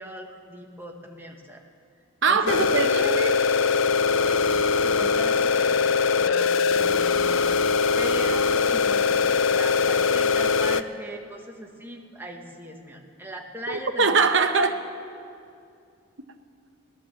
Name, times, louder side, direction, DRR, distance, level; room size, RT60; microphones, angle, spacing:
voice 1, 0.0-1.6 2.3-2.8 4.2-14.2, equal, 10° right, 1 dB, 1.3 m, -39 dB
voice 2, 2.2-3.4 13.7-14.8, right 4 dB, 60° right, 7 dB, 0.9 m, -22 dB
sound 1, 2.5-10.8, left 5 dB, 65° left, 0.5 m, -22 dB
16.0 x 11.5 x 7.5 m, 2.4 s
head